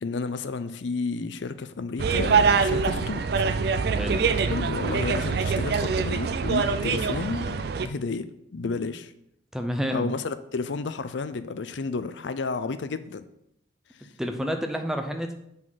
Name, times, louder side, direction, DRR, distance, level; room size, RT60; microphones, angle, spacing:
voice 1, 0.0-3.2 4.1-7.5 7.8-8.3 8.5-9.1 9.9-13.2, left 4 dB, 70° left, 12 dB, 0.5 m, -31 dB
sound 1, 2.0-7.9, right 5 dB, 55° right, 0.4 m, -24 dB
voice 2, 3.9-4.2 9.5-10.1 14.2-15.3, equal, 5° right, 5 dB, 0.6 m, -29 dB
7.5 x 4.0 x 5.7 m, 0.77 s
head